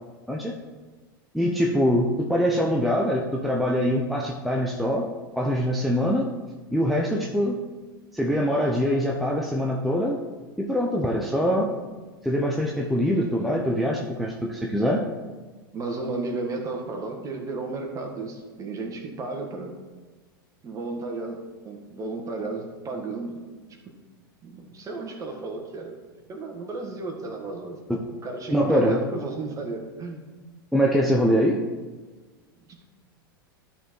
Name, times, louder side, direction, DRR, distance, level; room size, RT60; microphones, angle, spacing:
voice 1, 1.3-5.1 5.4-6.3 6.7-7.6 8.1-10.2 10.6-11.7 12.2-15.0 27.9-28.0 28.5-29.0 30.7-31.6, equal, ahead, -1 dB, 0.8 m, -23 dB
voice 2, 15.7-19.8 20.6-23.4 24.4-26.0 26.3-27.8 28.2-30.2, right 3 dB, 30° right, 2 dB, 1.7 m, -34 dB
12.0 x 4.4 x 4.6 m, 1.3 s
hypercardioid pair, 95°, 12 cm